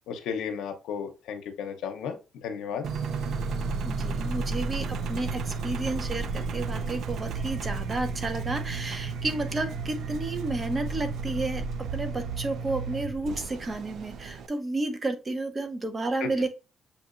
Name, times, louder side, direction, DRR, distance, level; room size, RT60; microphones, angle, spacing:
voice 1, 0.1-2.9 16.2-16.3, left 7 dB, 85° left, 5 dB, 0.7 m, -34 dB
Engine, 2.8-14.5, right 4 dB, 70° right, 0.5 m, -33 dB
voice 2, 3.8-16.5, right 2 dB, 30° right, 7 dB, 0.8 m, -31 dB
6.8 x 2.8 x 2.4 m, 0.29 s
cardioid pair, 90°, 0 cm